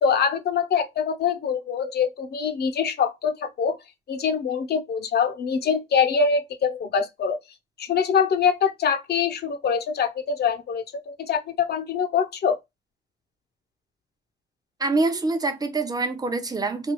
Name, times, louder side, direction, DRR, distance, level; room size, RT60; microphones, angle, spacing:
voice 1, 0.0-3.8 4.1-7.4 7.8-12.6, left 6 dB, 55° left, 0.6 m, -24 dB
voice 2, 14.8-16.9, right 3 dB, 20° right, 0.6 m, -25 dB
3.2 x 2.3 x 2.9 m
cardioid pair, 90°, 20 cm